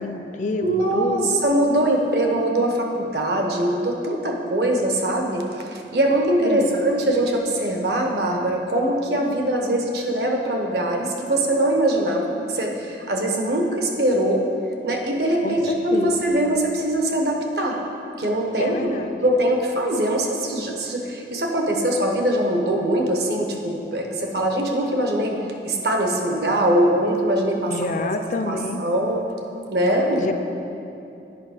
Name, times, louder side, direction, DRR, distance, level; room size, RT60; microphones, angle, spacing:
voice 1, 0.0-1.4 6.4-6.7 15.4-16.2 18.6-19.2 27.7-28.8 30.2-30.3, left 2 dB, 45° left, 7 dB, 0.4 m, -27 dB
voice 2, 0.6-14.4 14.8-17.8 18.2-18.9 19.2-25.4 25.6-27.7 28.4-29.2 29.7-30.3, right 1 dB, 65° right, 2 dB, 0.9 m, -22 dB
8.6 x 5.5 x 4.8 m, 2.8 s
head